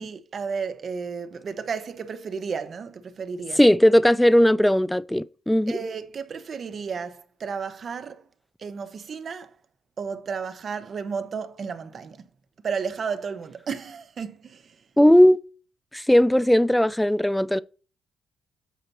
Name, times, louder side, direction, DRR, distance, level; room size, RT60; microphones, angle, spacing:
voice 1, 0.0-3.6 5.7-8.3 8.6-9.5 10.0-12.3 12.6-14.8, right 5 dB, 50° right, 0.8 m, -33 dB
voice 2, 3.6-5.8 15.0-15.4 15.9-17.6, left 1 dB, 5° left, 0.3 m, -18 dB
8.2 x 5.7 x 3.0 m
cardioid pair, 90°, 0 cm